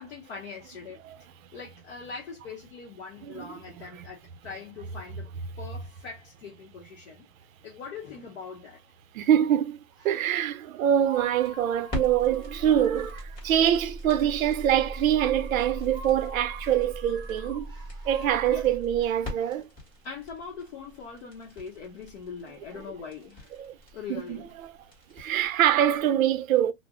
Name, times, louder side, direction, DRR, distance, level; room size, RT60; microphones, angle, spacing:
voice 1, 0.0-5.3 5.6-7.3 7.6-8.8 18.5-18.7 20.0-23.5 23.9-24.5, left 5 dB, 55° left, 0.8 m, -42 dB
voice 2, 9.1-9.8 10.0-17.7 18.1-19.6 23.5-23.7 24.1-24.7 25.2-26.7, right 10 dB, 85° right, 0.6 m, -24 dB
sound 1, 9.9-10.5 11.0-19.6, right 3 dB, 10° right, 0.5 m, -48 dB
sound 2, 10.9-26.1, equal, 15° left, 1.2 m, -40 dB
2.4 x 2.0 x 3.5 m
supercardioid pair, 155°, 40 cm